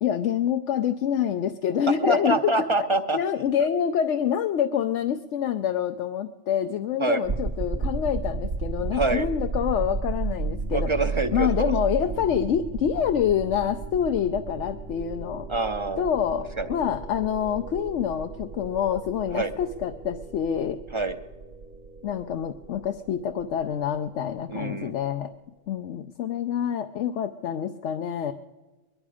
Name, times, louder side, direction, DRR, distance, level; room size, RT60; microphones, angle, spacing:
voice 1, 0.0-2.7 3.1-10.9 11.3-15.5 16.0-20.8 22.0-25.3 25.7-28.3, left 9 dB, 80° left, 7 dB, 1.0 m, -26 dB
voice 2, 1.9-3.2 3.6-3.7 7.0-7.2 8.9-9.3 10.7-11.7 15.5-16.1 16.6-16.7 19.3-19.5 20.9-21.1 24.5-24.9, right 2 dB, 35° right, 9 dB, 0.6 m, -26 dB
sound 1, 7.2-24.2, right 4 dB, 50° right, 1.0 m, -33 dB
22.5 x 11.5 x 4.9 m, 1.2 s
omnidirectional pair, 1.2 m